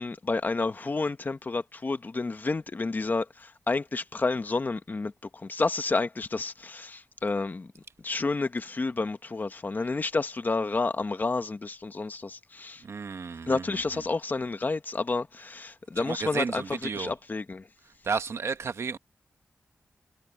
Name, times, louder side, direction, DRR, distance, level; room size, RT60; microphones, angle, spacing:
voice 1, 0.0-5.1 5.4-7.7 8.0-12.8 13.5-17.6, left 3 dB, 40° left, 1.3 m, -30 dB
voice 2, 12.8-14.1 16.0-17.1 18.0-19.0, right 5 dB, 70° right, 1.1 m, -33 dB
wide cardioid pair, 105°, 5 cm